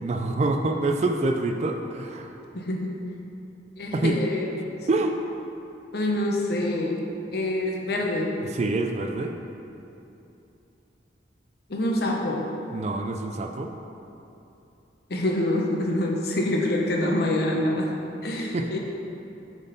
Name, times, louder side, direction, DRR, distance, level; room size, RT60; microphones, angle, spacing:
voice 1, 0.0-2.3 3.9-4.2 4.9-5.2 8.5-9.3 12.7-13.7 18.5-18.7, right 2 dB, 35° right, 4 dB, 0.3 m, -26 dB
voice 2, 2.5-2.9 3.8-4.6 5.9-7.0 7.3-8.3 11.7-12.4 15.1-17.9 18.2-18.8, left 1 dB, 60° left, 0 dB, 0.7 m, -26 dB
7.4 x 3.7 x 4.0 m, 2.8 s
head